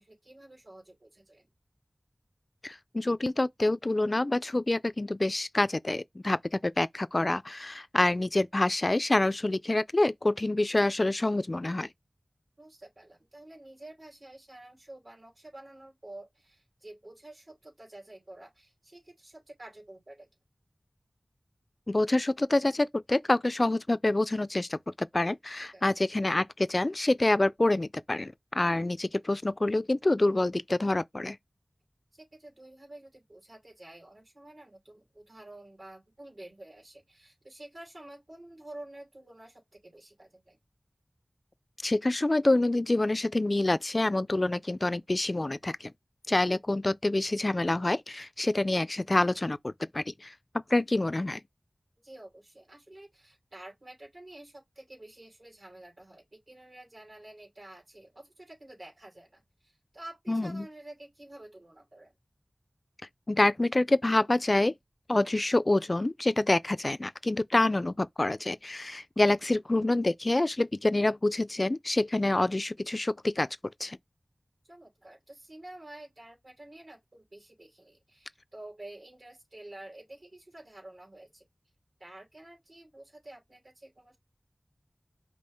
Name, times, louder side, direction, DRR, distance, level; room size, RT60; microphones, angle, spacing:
voice 1, 0.0-1.5 12.6-20.3 25.7-26.0 32.1-40.6 52.0-62.1 69.5-69.6 74.6-81.4 82.0-84.2, right 1 dB, 70° right, 2.9 m, -49 dB
voice 2, 2.6-11.9 21.9-31.4 41.8-45.9 46.3-50.3 50.7-51.4 60.3-60.6 63.3-64.7 65.1-73.5 73.8-74.0, left 2 dB, 45° left, 0.3 m, -27 dB
5.3 x 2.4 x 3.4 m
wide cardioid pair, 55°, 0 cm